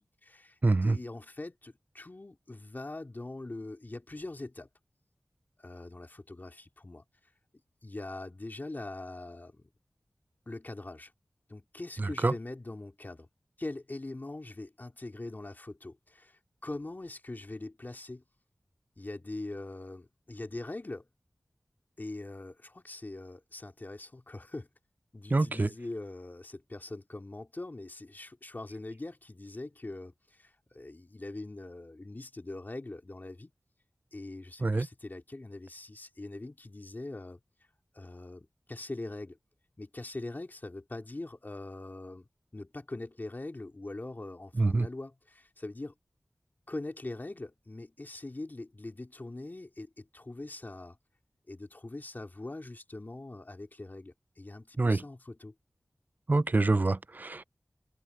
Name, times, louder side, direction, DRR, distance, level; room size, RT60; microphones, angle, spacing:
voice 1, 0.0-4.7 5.6-7.0 7.8-9.7 10.5-11.1 11.5-13.3 13.6-18.2 19.0-21.1 22.0-24.7 25.1-33.5 34.1-37.4 37.9-39.4 39.8-45.9 46.7-51.0 51.5-55.5, left 2 dB, 40° left, 3.0 m, -42 dB
voice 2, 0.6-1.0 12.0-12.3 25.3-25.7 34.6-34.9 44.6-44.9 54.8-55.0 56.3-57.4, right 3 dB, 35° right, 0.5 m, -26 dB
wide cardioid pair, 70°, 5 cm